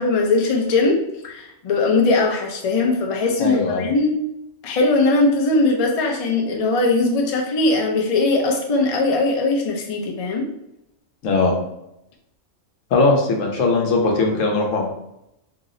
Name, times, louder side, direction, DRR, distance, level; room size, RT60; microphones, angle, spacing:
voice 1, 0.0-4.2 4.6-10.5, left 3 dB, 50° left, 1 dB, 0.4 m, -20 dB
voice 2, 3.4-3.9 11.2-11.5 12.9-14.9, left 3 dB, 80° left, 1 dB, 1.1 m, -19 dB
2.8 x 2.0 x 3.7 m, 0.83 s
omnidirectional pair, 1.3 m